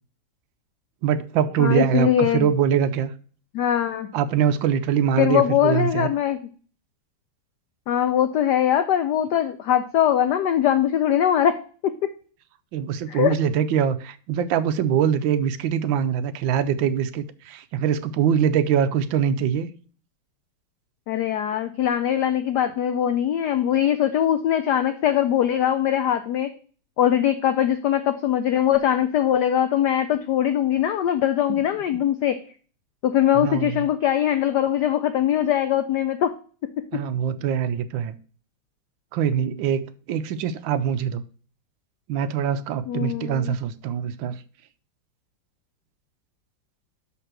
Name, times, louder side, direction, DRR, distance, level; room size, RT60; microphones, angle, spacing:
voice 1, 1.0-3.1 4.1-6.1 12.7-19.7 31.5-31.6 33.3-33.8 36.9-38.1 39.1-41.2 42.1-44.4, right 8 dB, 70° right, 1.2 m, -23 dB
voice 2, 1.6-2.5 3.5-4.1 5.2-6.4 7.9-11.6 11.8-11.9 13.1-13.3 21.1-26.5 27.0-32.4 33.0-36.3 36.9-37.0 42.9-43.5, left 10 dB, 85° left, 0.9 m, -21 dB
5.8 x 5.7 x 6.0 m
omnidirectional pair, 2.4 m